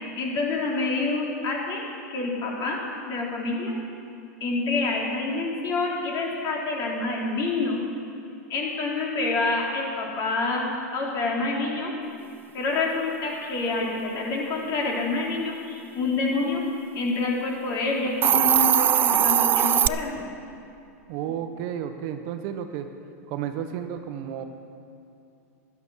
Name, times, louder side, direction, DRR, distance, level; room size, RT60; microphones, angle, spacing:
voice 1, 0.2-1.8 2.1-2.8 3.1-3.7 4.4-7.8 8.5-11.9 12.5-16.6 16.9-20.2, left 3 dB, 40° left, -2 dB, 3.4 m, -27 dB
Hiss, 18.1-19.9, right 9 dB, 25° right, 0.3 m, -20 dB
voice 2, 21.1-22.9 23.3-24.5, right 9 dB, 55° right, 7 dB, 1.1 m, -32 dB
12.5 x 11.0 x 6.3 m, 2.6 s
hypercardioid pair, 115°, 9 cm